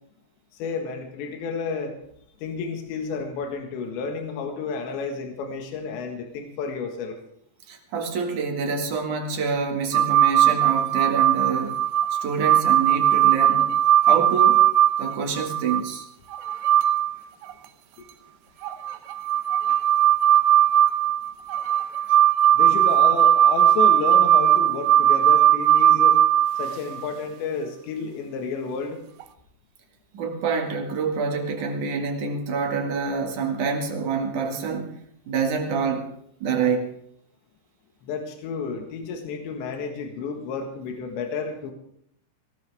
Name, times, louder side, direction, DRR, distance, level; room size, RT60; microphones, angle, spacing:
voice 1, 0.5-2.0 2.4-7.2 22.5-26.2 26.6-29.0 38.0-41.7, left 5 dB, 85° left, 3.9 m, -31 dB
voice 2, 7.7-11.8 12.1-14.6 15.0-16.1 30.1-35.0 35.3-36.1 36.4-36.9, right 5 dB, 50° right, 3.0 m, -27 dB
sound 1, 9.9-15.8 16.3-17.1 17.4-17.5 18.6-27.1 29.2-29.3, right 11 dB, 80° right, 2.0 m, -19 dB
20.5 x 16.5 x 3.5 m
omnidirectional pair, 5.0 m